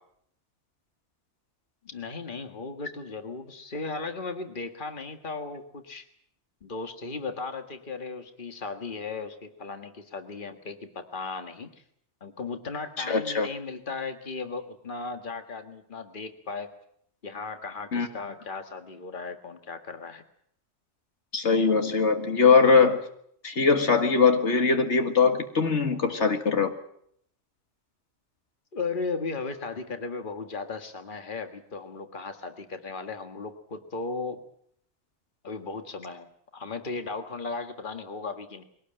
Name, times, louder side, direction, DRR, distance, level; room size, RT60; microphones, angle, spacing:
voice 1, 1.8-6.0 6.6-11.8 12.2-16.7 17.2-20.2 28.7-34.4 35.4-38.6, left 4 dB, 45° left, 7 dB, 1.9 m, -36 dB
voice 2, 13.0-13.5 17.9-18.1 21.3-23.0 23.4-26.7, left 5 dB, 80° left, 6 dB, 2.1 m, -21 dB
22.0 x 18.0 x 8.9 m, 0.69 s
omnidirectional pair, 1.2 m